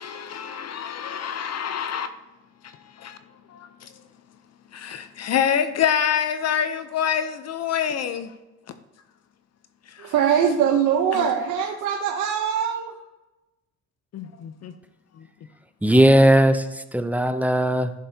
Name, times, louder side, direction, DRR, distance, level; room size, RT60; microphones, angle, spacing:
voice 1, 0.0-2.1 2.6-3.2 3.5-3.9 4.7-8.3 9.9-10.1 11.1-11.3 14.1-14.7 15.2-15.3, left 8 dB, 60° left, 0.6 m, -27 dB
voice 2, 10.0-12.9, right 8 dB, 85° right, 0.8 m, -22 dB
voice 3, 15.8-17.9, right 1 dB, 5° right, 0.6 m, -18 dB
11.0 x 6.4 x 2.8 m
cardioid pair, 90°, 30 cm